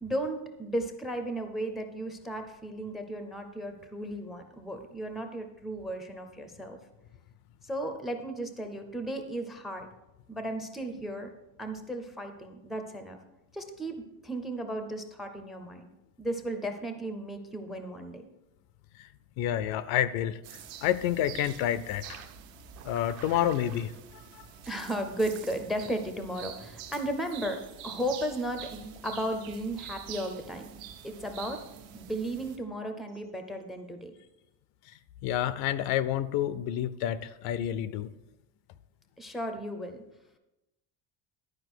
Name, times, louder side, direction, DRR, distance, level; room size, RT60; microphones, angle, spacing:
voice 1, 0.0-6.8 7.6-9.9 10.3-11.3 11.6-13.2 13.5-15.9 16.2-18.2 24.7-30.7 31.0-31.6 31.9-34.1 39.2-40.0, right 1 dB, ahead, 7 dB, 0.5 m, -35 dB
voice 2, 19.4-20.4 20.8-22.2 22.8-23.9 24.4-24.5 35.2-38.1, left 11 dB, 70° left, 15 dB, 0.6 m, -29 dB
sound 1, 20.4-24.3 24.6-26.9 27.2-29.5 29.9-30.4 33.1-33.3 34.2-34.3, right 9 dB, 40° right, 0.7 m, -53 dB
sound 2, 20.4-32.6, right 8 dB, 70° right, 1.2 m, -47 dB
11.0 x 4.9 x 6.1 m, 0.96 s
cardioid pair, 170°, 38 cm